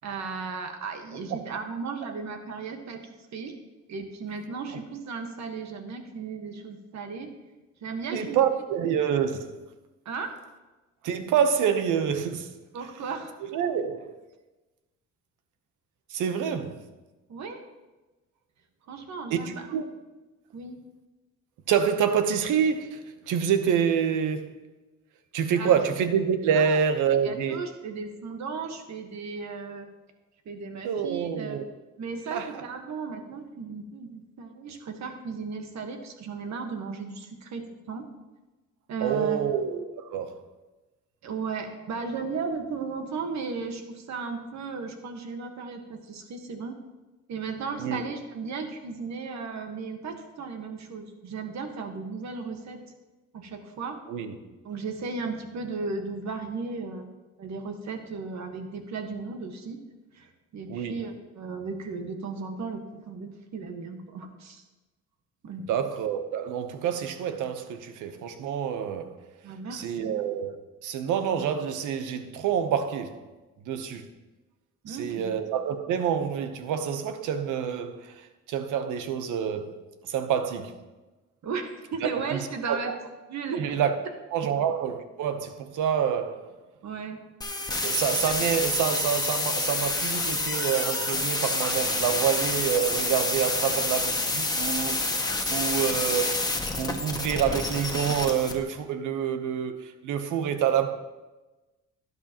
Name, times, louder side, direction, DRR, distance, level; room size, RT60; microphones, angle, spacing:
voice 1, 0.0-3.5 3.9-7.3 7.8-8.4 10.0-10.3 12.7-13.4 17.3-17.7 18.9-19.7 20.5-20.8 25.6-25.8 26.5-26.8 27.2-29.9 30.4-31.6 32.0-38.1 38.9-39.4 41.2-46.8 47.3-52.8 53.3-54.0 54.6-57.1 57.4-59.8 60.1-64.6 65.4-65.8 69.4-70.2 74.8-75.3 81.4-82.9 83.3-83.6 86.8-87.2, right 4 dB, 65° right, 1.5 m, -35 dB
voice 2, 8.1-9.6 11.0-12.5 13.5-14.2 16.1-16.8 19.3-19.9 21.7-24.5 25.3-27.6 30.8-31.6 32.3-32.5 39.0-40.4 47.8-48.0 54.1-54.3 60.7-61.0 65.7-69.2 69.7-70.6 70.8-73.2 73.6-74.1 74.9-79.8 80.0-80.7 82.0-82.4 82.7-83.0 83.5-84.0 84.3-86.5 87.8-95.0 95.5-96.4 96.8-101.0, right 8 dB, 90° right, 1.0 m, -27 dB
sound 1, 87.4-98.5, left 2 dB, 15° left, 1.3 m, -28 dB
12.0 x 11.0 x 3.0 m
cardioid pair, 90°, 30 cm